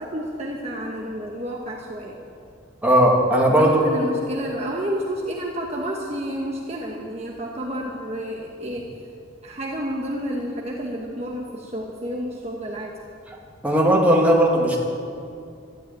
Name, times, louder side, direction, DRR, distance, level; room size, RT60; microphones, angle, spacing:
voice 1, 0.0-2.2 3.6-8.9 9.4-13.0, equal, 30° right, -1 dB, 1.2 m, -30 dB
voice 2, 2.8-3.8 13.6-14.8, right 1 dB, 10° right, -3 dB, 2.3 m, -17 dB
13.0 x 11.5 x 8.8 m, 2.5 s
head